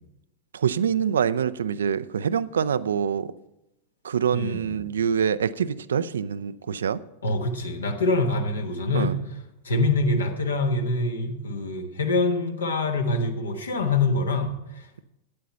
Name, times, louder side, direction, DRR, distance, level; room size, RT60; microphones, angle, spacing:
voice 1, 0.5-3.3 4.0-7.0 8.9-9.2, right 7 dB, 65° right, 0.4 m, -25 dB
voice 2, 4.3-4.8 7.2-9.2 9.6-15.0, left 2 dB, 70° left, 1.3 m, -25 dB
9.3 x 8.6 x 5.6 m
figure-of-eight pair, 90°, 0 cm